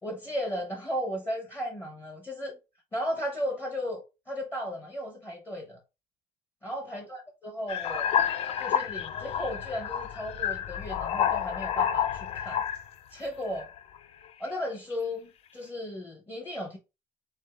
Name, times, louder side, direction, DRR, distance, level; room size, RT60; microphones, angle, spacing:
voice 1, 0.0-2.5 2.9-5.8 6.6-8.1 8.6-12.6 13.1-13.7 14.4-16.8, equal, 15° left, 1.0 m, -35 dB
sound 1, 7.7-12.9 13.5-14.0, left 9 dB, 50° left, 0.4 m, -29 dB
3.7 x 3.6 x 3.4 m
cardioid pair, 160°, 13 cm